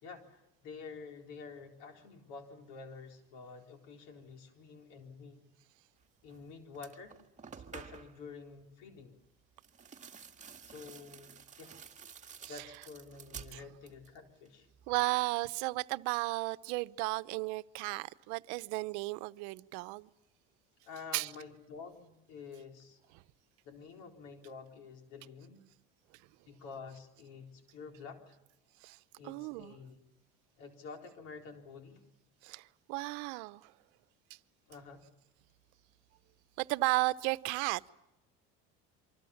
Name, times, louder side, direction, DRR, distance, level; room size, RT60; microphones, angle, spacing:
voice 1, 0.0-5.5 6.2-7.1 7.6-9.1 10.7-11.3 11.6-11.7 12.5-14.7 20.8-23.0 23.6-25.6 26.5-28.4 29.2-30.0 30.6-32.0 34.7-35.0, left 5 dB, 80° left, 4.2 m, -49 dB
sound 1, 6.3-6.4 6.7-8.2 9.6-14.2 14.5-15.1, right 6 dB, 25° right, 1.9 m, -51 dB
voice 2, 14.9-20.1 21.1-21.3 23.1-23.2 28.8-29.0 29.2-29.8 32.4-33.7 34.3-34.4 36.6-37.9, right 22 dB, 80° right, 0.9 m, -34 dB
27.5 x 25.0 x 7.3 m
supercardioid pair, 110°, 29 cm